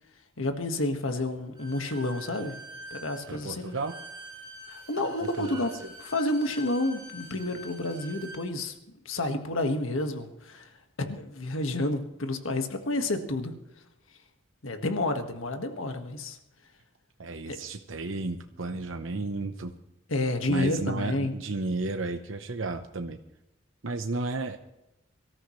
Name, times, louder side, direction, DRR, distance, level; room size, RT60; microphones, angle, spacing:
voice 1, 0.4-2.6 2.9-3.8 4.7-5.7 6.0-8.7 9.0-10.7 11.0-13.5 14.6-16.4 17.4-17.6 20.1-21.3, left 2 dB, 85° left, 6 dB, 1.7 m, -30 dB
Bowed string instrument, 1.5-8.4, right 1 dB, 20° right, 5.9 m, -45 dB
voice 2, 3.3-4.0 5.2-5.5 5.8-5.9 17.2-19.7 20.5-23.2 23.8-24.6, right 3 dB, 80° right, 6 dB, 0.9 m, -33 dB
24.0 x 14.0 x 3.2 m, 0.89 s
head